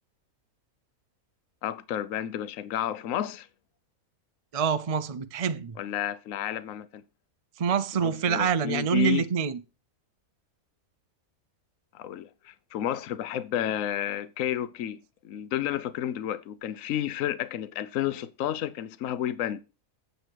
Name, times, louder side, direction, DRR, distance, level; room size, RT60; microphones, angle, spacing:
voice 1, 1.6-3.5 5.8-7.0 7.9-9.3 11.9-19.6, left 11 dB, 70° left, 1.1 m, -31 dB
voice 2, 4.5-5.7 7.6-9.6, right 7 dB, 45° right, 0.4 m, -26 dB
8.3 x 7.9 x 4.6 m
omnidirectional pair, 1.5 m